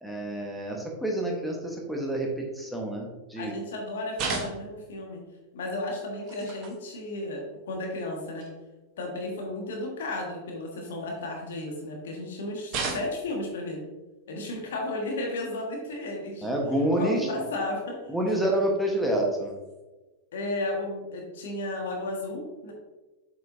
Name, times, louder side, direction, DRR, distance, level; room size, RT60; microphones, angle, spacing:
voice 1, 0.0-3.5 16.4-17.3 18.1-19.5, right 1 dB, ahead, -1 dB, 1.2 m, -28 dB
voice 2, 3.4-5.2 5.5-8.5 9.0-13.8 14.3-16.5 17.0-18.1 20.3-22.7, left 2 dB, 60° left, 1 dB, 1.5 m, -34 dB
sound 1, 4.1-4.9 6.2-6.8 7.8-7.9 8.4-8.5 10.7-11.5 12.7-13.4 15.1-15.3 16.9-17.0 18.2-18.3 19.5-19.8, right 4 dB, 40° right, 1.1 m, -35 dB
7.6 x 5.3 x 2.7 m, 1.1 s
figure-of-eight pair, 90°, 0 cm